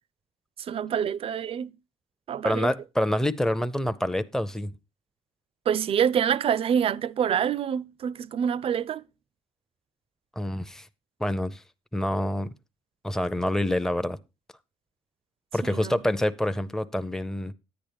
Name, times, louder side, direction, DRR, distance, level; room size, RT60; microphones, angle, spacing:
voice 1, 0.6-1.7 2.3-2.7 5.7-9.0 15.6-15.9, right 8 dB, 45° right, 0.4 m, -26 dB
voice 2, 2.4-4.7 10.4-10.9 11.2-11.6 11.9-12.5 13.0-14.2 15.5-17.5, left 1 dB, 5° left, 0.5 m, -27 dB
10.0 x 8.7 x 3.4 m
supercardioid pair, 80°, 13 cm